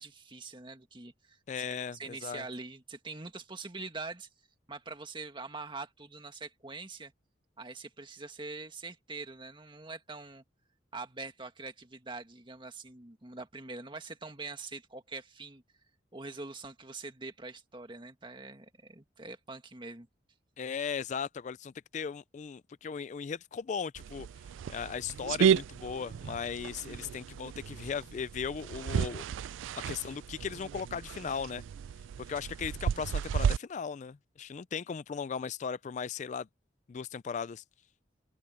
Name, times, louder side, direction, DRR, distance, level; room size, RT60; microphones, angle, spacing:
voice 1, 0.0-4.3 4.7-7.1 7.6-10.4 10.9-15.6 16.1-20.1, right 3 dB, 25° right, 1.9 m, -44 dB
voice 2, 1.5-2.4 20.6-24.3 24.7-29.2 29.9-31.6 32.2-36.5 36.9-37.6, left 6 dB, 40° left, 0.3 m, -37 dB
sound 1, 23.9-33.6, right 7 dB, 85° right, 0.3 m, -33 dB
open air
head